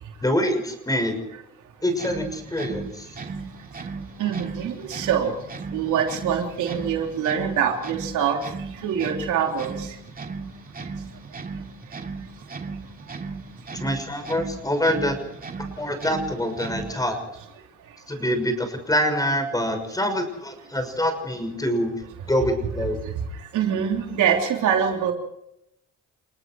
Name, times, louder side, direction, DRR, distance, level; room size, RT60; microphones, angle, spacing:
voice 1, 0.2-1.2 1.8-3.1 13.7-15.2 15.8-17.2 18.1-21.9 22.3-23.0, equal, 10° left, 7 dB, 6.1 m, -25 dB
sound 1, 1.9-17.1, right 4 dB, 30° right, 2.7 m, -36 dB
voice 2, 4.2-5.3 5.7-8.4 8.8-9.9 23.5-25.1, right 8 dB, 80° right, 2 dB, 3.4 m, -24 dB
30.0 x 18.5 x 4.7 m, 0.81 s
cardioid pair, 90°, 30 cm